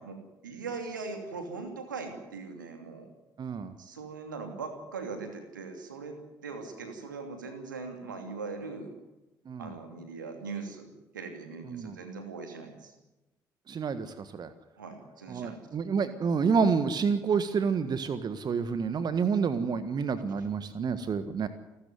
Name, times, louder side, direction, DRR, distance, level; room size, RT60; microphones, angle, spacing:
voice 1, 0.0-3.1 3.8-8.9 9.6-12.9 14.8-15.6, right 4 dB, 80° right, 6 dB, 2.9 m, -40 dB
voice 2, 3.4-3.7 9.5-9.7 11.7-12.0 13.7-14.5 15.3-21.5, right 5 dB, 45° right, 12 dB, 1.5 m, -29 dB
29.0 x 13.0 x 9.5 m, 1.0 s
figure-of-eight pair, 45°, 10 cm